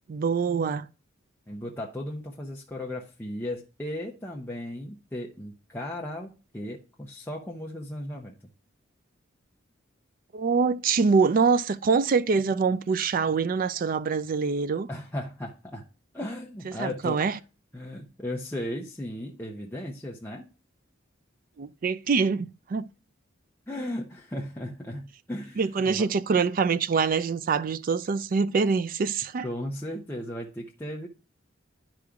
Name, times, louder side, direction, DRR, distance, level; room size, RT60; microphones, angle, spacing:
voice 1, 0.1-0.9 10.3-14.9 16.7-17.4 21.6-22.8 25.6-29.5, right 5 dB, 45° right, 0.4 m, -25 dB
voice 2, 1.5-8.3 14.9-15.8 16.1-17.4 17.7-20.4 23.7-26.1 29.4-31.1, left 1 dB, 10° left, 0.6 m, -36 dB
11.5 x 4.8 x 2.4 m
head